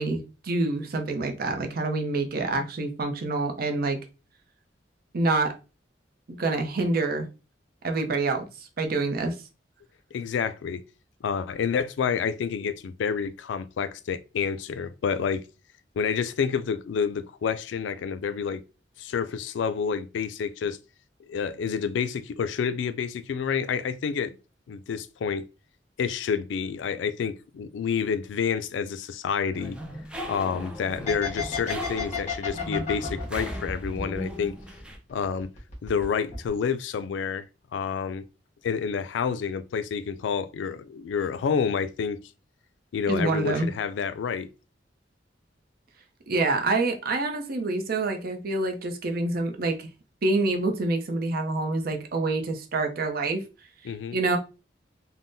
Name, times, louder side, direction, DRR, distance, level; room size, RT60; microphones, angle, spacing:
voice 1, 0.0-4.0 5.1-5.5 6.4-7.2 7.8-9.3 43.1-43.7 46.3-49.9 50.2-53.4 54.1-54.4, right 2 dB, 55° right, 0.6 m, -26 dB
voice 2, 10.1-10.8 11.2-15.4 16.0-18.6 19.0-20.8 21.3-24.4 24.7-25.4 26.0-29.8 30.3-34.5 35.1-35.5 35.8-37.5 37.7-38.2 38.6-42.2 42.9-44.5 53.8-54.2, left 6 dB, 85° left, 0.3 m, -29 dB
sound 1, 29.5-35.0, equal, 5° right, 0.5 m, -38 dB
sound 2, 31.1-34.8 35.1-36.0 36.3-36.5, left 5 dB, 45° left, 1.2 m, -32 dB
3.5 x 2.1 x 2.6 m
head